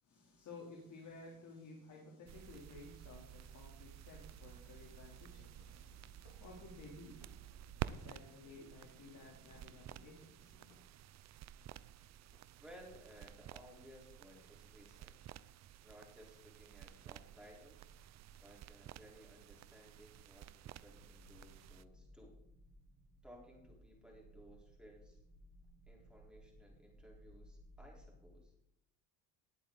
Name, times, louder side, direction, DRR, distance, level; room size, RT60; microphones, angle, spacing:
voice 1, 0.0-10.8, left 3 dB, 50° left, -1 dB, 3.3 m, -55 dB
sound 1, 2.3-21.8, right 11 dB, 45° right, 0.6 m, -52 dB
sound 2, 5.6-6.4 7.2-8.0 9.1-9.6 10.7-10.9 12.0-12.8, left 3 dB, 85° left, 5.1 m, -68 dB
voice 2, 12.6-15.3 15.8-17.9 18.4-22.4 23.2-25.2 25.9-28.5, equal, ahead, -2 dB, 4.2 m, -59 dB
sound 3, 20.8-28.4, equal, 30° right, 2.8 m, -61 dB
18.5 x 8.4 x 4.0 m, 0.80 s
cardioid pair, 120°, 38 cm